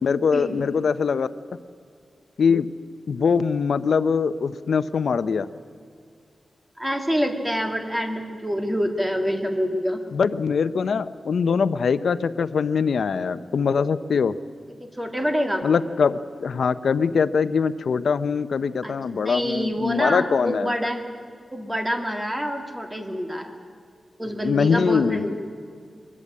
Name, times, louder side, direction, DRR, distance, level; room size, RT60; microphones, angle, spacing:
voice 1, 0.0-1.3 2.4-2.7 3.1-5.5 10.1-14.3 15.6-20.7 24.4-25.3, left 5 dB, 80° left, 13 dB, 0.6 m, -22 dB
voice 2, 6.8-10.0 14.8-15.6 18.8-21.0 21.5-23.5 24.2-25.3, equal, 10° right, 4 dB, 1.9 m, -26 dB
22.5 x 13.5 x 8.6 m, 2.2 s
wide cardioid pair, 170°, 0 cm